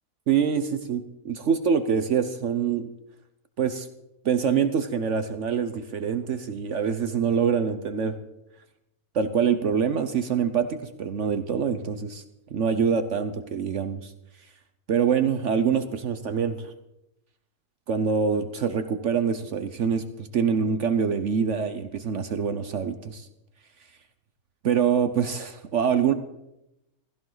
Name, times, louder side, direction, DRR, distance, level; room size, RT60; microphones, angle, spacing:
voice 1, 0.3-2.9 3.6-3.9 4.2-8.1 9.1-12.2 12.5-14.1 14.9-16.7 17.9-23.3 24.6-26.1, right 7 dB, 60° right, 10 dB, 1.0 m, -25 dB
16.0 x 15.0 x 3.9 m, 0.89 s
omnidirectional pair, 1.5 m